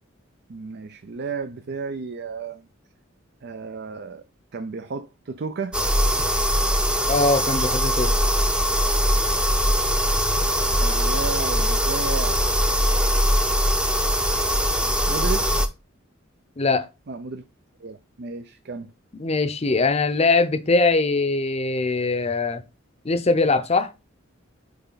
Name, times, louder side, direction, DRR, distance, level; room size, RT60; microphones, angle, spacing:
voice 1, 0.5-2.7 3.4-4.3 4.5-5.8 10.8-12.5 15.1-15.6 17.1-17.4 17.8-18.9, right 4 dB, 55° right, 0.5 m, -33 dB
sound 1, 5.7-15.7, equal, 5° right, 0.7 m, -21 dB
voice 2, 7.1-8.1 16.6-16.9 19.2-22.6 23.0-23.9, left 3 dB, 30° left, 0.7 m, -21 dB
8.3 x 3.3 x 3.9 m
head